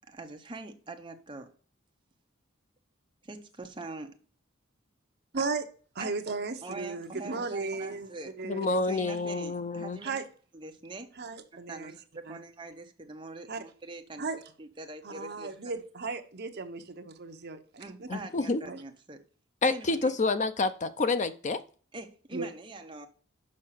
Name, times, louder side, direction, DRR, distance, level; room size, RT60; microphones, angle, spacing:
voice 1, 0.1-1.5 3.2-4.2 6.0-6.1 6.6-8.3 8.9-10.2 10.5-11.1 11.7-14.3 14.6-15.6 17.8-19.2 19.6-20.1 21.9-23.1, right 2 dB, 25° right, 1.0 m, -43 dB
voice 2, 5.3-5.6 5.9-8.1 8.4-8.9 10.0-10.2 11.2-11.9 12.3-12.4 13.5-13.6 14.2-14.4 15.0-18.1 18.6-18.8 22.3-22.5, right 4 dB, 55° right, 0.9 m, -35 dB
voice 3, 8.4-10.0 18.1-18.6 19.6-21.6, left 3 dB, 35° left, 0.5 m, -28 dB
6.4 x 5.6 x 5.7 m
head